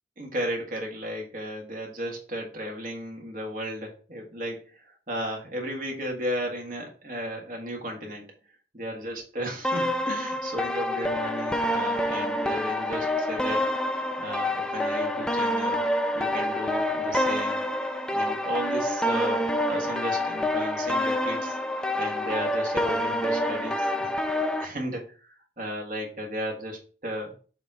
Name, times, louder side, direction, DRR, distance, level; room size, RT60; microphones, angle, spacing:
voice 1, 0.2-8.3 8.7-13.7 14.2-15.9 16.1-17.7 18.1-21.6 21.9-27.3, equal, 50° right, 1 dB, 1.7 m, -34 dB
sound 1, 9.6-24.7, left 1 dB, 5° left, 0.4 m, -27 dB
6.9 x 2.9 x 4.7 m, 0.39 s
head